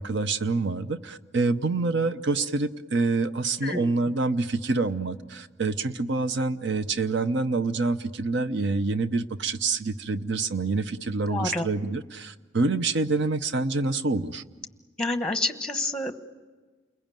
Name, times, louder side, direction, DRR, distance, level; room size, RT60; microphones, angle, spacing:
voice 1, 0.0-14.4, right 3 dB, 65° right, 12 dB, 0.9 m, -26 dB
voice 2, 3.6-4.0 11.3-11.7 15.0-16.3, left 2 dB, 5° left, 8 dB, 1.0 m, -28 dB
29.5 x 21.5 x 9.1 m, 1.4 s
head